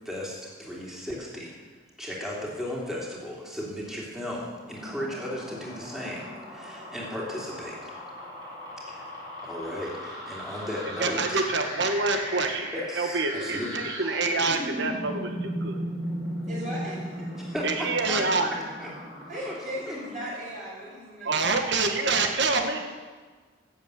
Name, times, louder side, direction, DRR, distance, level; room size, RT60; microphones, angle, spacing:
voice 1, 0.0-1.6 2.0-7.9 8.9-9.1 9.4-11.4 12.7-13.8 17.4-18.2 18.8-18.9 19.4-19.6 19.8-20.0, left 1 dB, ahead, -5 dB, 3.0 m, -35 dB
sound 1, 4.4-20.8, equal, 20° right, 3.1 m, -37 dB
voice 2, 11.0-15.8 17.6-18.5 21.2-22.9, right 3 dB, 55° right, 5 dB, 1.4 m, -27 dB
voice 3, 16.4-17.3 19.3-21.5, equal, 40° right, -7 dB, 5.2 m, -37 dB
13.5 x 7.6 x 8.3 m, 1.5 s
head